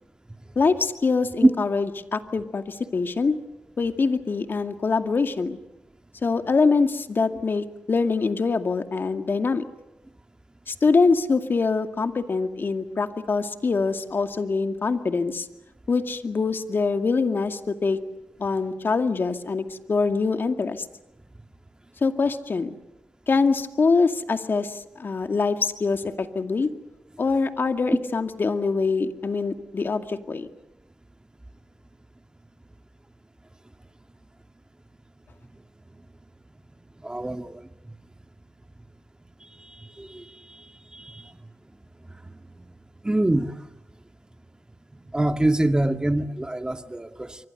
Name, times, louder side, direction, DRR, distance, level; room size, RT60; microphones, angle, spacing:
voice 1, 0.6-3.4 3.8-5.6 6.2-9.6 10.7-15.5 15.9-18.0 18.4-20.9 22.0-22.8 23.3-26.7 27.2-30.5, left 4 dB, 55° left, 8 dB, 2.2 m, -24 dB
voice 2, 37.0-37.6 40.0-40.2 40.9-41.3 43.0-43.5 45.1-47.4, right 1 dB, 20° right, 8 dB, 2.0 m, -23 dB
27.5 x 24.5 x 6.7 m, 0.92 s
supercardioid pair, 45°, 4 cm